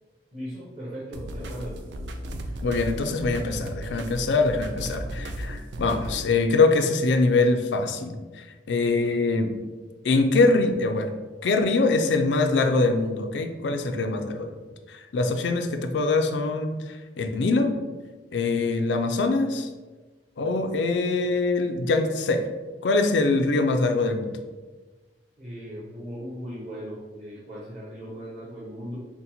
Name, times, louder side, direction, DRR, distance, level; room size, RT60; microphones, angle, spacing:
voice 1, 0.3-1.7 25.4-29.0, equal, 40° right, -8 dB, 1.0 m, -38 dB
sound 1, 1.1-6.2, right 1 dB, 75° right, 0.4 m, -35 dB
voice 2, 2.6-9.6 10.0-11.1 11.4-14.5 14.9-17.8 18.3-19.7 20.4-22.4 22.8-24.4, left 3 dB, 80° left, 6 dB, 0.4 m, -23 dB
4.0 x 2.1 x 4.1 m, 1.3 s
head